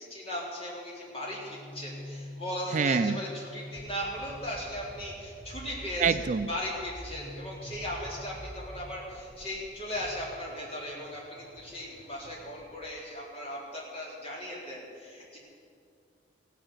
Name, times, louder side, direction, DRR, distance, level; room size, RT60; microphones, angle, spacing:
voice 1, 0.0-6.0 6.5-15.4, equal, 30° left, -4 dB, 3.7 m, -37 dB
sound 1, 1.2-13.0, equal, ahead, 3.9 m, -46 dB
voice 2, 2.7-3.2 6.0-6.5, right 5 dB, 40° right, 12 dB, 0.4 m, -25 dB
16.0 x 10.0 x 8.1 m, 2.4 s
head